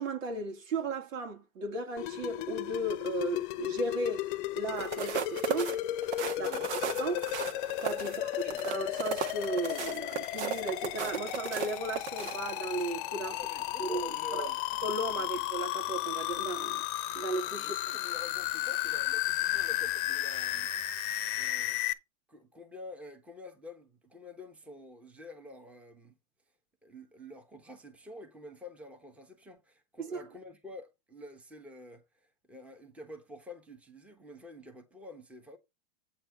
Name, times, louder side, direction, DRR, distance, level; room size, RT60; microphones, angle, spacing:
voice 1, 0.0-5.8 6.4-7.3 7.8-13.4 13.8-14.5 14.8-16.8 17.1-17.7 30.0-30.2, right 2 dB, 80° right, 2.7 m, -35 dB
sound 1, 2.0-21.9, left 15 dB, 40° left, 0.8 m, -34 dB
sound 2, 4.7-12.9 13.4-13.6, right 7 dB, 60° right, 1.6 m, -36 dB
voice 2, 6.3-6.7 8.0-8.2 8.5-8.6 13.2-14.6 15.2-15.3 17.5-20.7 21.4-21.8 22.3-26.2 26.8-35.6, left 1 dB, 5° right, 1.1 m, -48 dB
8.4 x 4.3 x 6.4 m
supercardioid pair, 150°, 38 cm